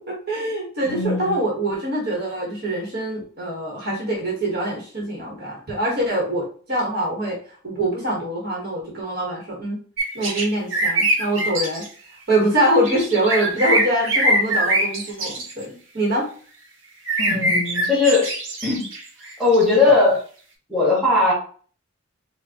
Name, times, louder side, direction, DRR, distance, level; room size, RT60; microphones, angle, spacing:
voice 1, 0.0-7.4 7.6-9.8 10.1-11.8 12.3-16.3, right 1 dB, 50° right, -3 dB, 1.4 m, -24 dB
voice 2, 0.8-1.3 17.2-18.3 18.6-18.8 19.4-20.2 20.7-21.3, left 3 dB, 5° right, -8 dB, 1.8 m, -18 dB
sound 1, 10.0-10.5 10.7-11.9 12.7-15.6 17.1-19.6, right 1 dB, 65° right, 1.1 m, -22 dB
4.8 x 2.2 x 2.9 m, 0.42 s
head